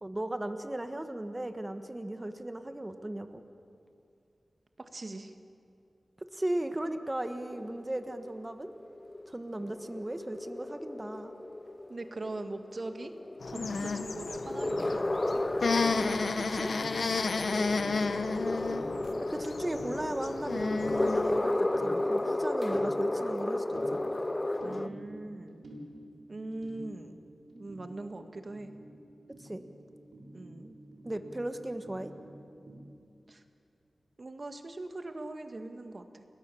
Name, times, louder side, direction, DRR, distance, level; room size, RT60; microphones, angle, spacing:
voice 1, 0.0-3.4 6.3-8.7 9.3-11.3 16.4-16.7 19.2-24.0 29.4-29.6 31.0-32.1, right 1 dB, 20° right, 8 dB, 1.3 m, -36 dB
voice 2, 4.8-5.3 11.9-13.1 13.5-15.4 17.4-18.4 21.3-21.7 24.6-25.7 26.3-27.2 27.5-28.7 30.3-30.7 33.3-33.4 34.2-36.2, right 2 dB, 45° right, 6 dB, 1.8 m, -42 dB
sound 1, 7.5-24.9, left 1 dB, 25° left, 0.8 m, -33 dB
sound 2, 13.4-21.4, left 4 dB, 70° left, 1.0 m, -32 dB
sound 3, 13.4-32.9, equal, 80° right, 4.1 m, -49 dB
29.5 x 21.5 x 7.0 m, 2.5 s
wide cardioid pair, 105°, 0 cm